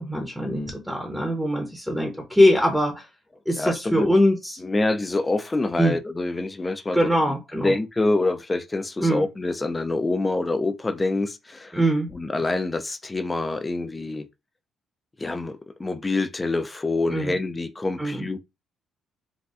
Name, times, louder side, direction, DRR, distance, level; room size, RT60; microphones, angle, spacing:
voice 1, 0.0-3.1 3.5-4.6 5.8-6.0 6.9-7.7 9.0-9.2 11.7-12.1 17.1-17.4 18.0-18.3, equal, 5° right, 0.8 m, -22 dB
voice 2, 3.6-4.1 4.6-7.4 7.6-11.8 12.1-14.3 15.2-18.4, left 2 dB, 20° left, 0.5 m, -26 dB
4.1 x 2.3 x 2.5 m
cardioid pair, 90°, 0 cm